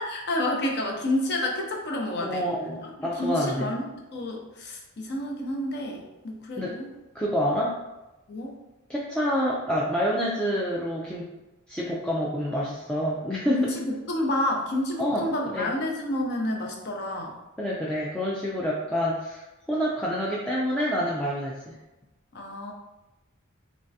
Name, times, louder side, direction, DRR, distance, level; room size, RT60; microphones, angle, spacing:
voice 1, 0.0-2.5 3.2-6.9 8.3-8.5 13.5-17.4 22.3-22.7, left 1 dB, 55° left, 0 dB, 0.7 m, -29 dB
voice 2, 2.2-3.7 6.6-6.7 7.1-7.8 8.9-11.3 11.7-13.6 15.0-15.7 17.6-21.8, equal, 5° left, -6 dB, 0.4 m, -27 dB
3.5 x 3.2 x 2.7 m, 1.0 s
head